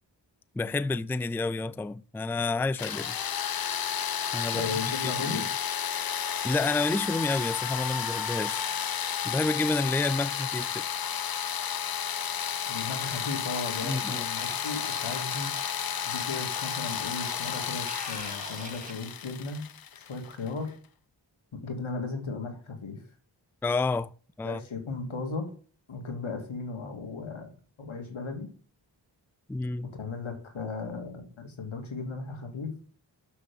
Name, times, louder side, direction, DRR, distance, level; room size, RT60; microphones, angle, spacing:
voice 1, 0.6-3.2 4.3-5.4 6.4-8.6 9.2-10.8 13.8-14.3 23.6-24.1 24.4-24.6 29.5-29.9, left 3 dB, 5° left, 0.4 m, -29 dB
sound 1, 2.8-20.5, left 8 dB, 50° left, 0.6 m, -32 dB
voice 2, 4.5-5.4 12.7-15.5 16.1-19.7 19.9-20.8 21.5-23.0 24.4-25.5 25.9-27.5 27.8-28.5 29.9-32.8, left 4 dB, 85° left, 2.6 m, -36 dB
Scratching (performance technique), 14.4-18.9, right 1 dB, 15° right, 2.2 m, -43 dB
7.1 x 6.5 x 6.9 m
cardioid pair, 45°, 46 cm